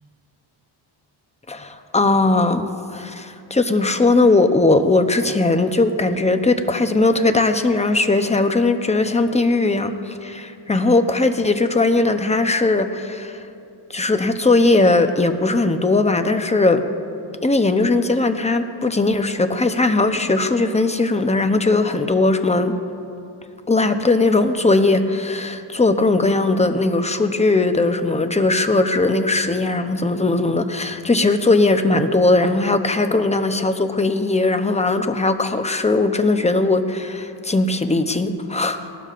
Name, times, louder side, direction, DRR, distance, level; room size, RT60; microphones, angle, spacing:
voice 1, 1.5-13.4 13.9-16.8 17.4-22.7 23.7-38.8, left 2 dB, 15° left, 8 dB, 0.7 m, -19 dB
19.0 x 12.0 x 2.5 m, 2.6 s
cardioid pair, 80°, 49 cm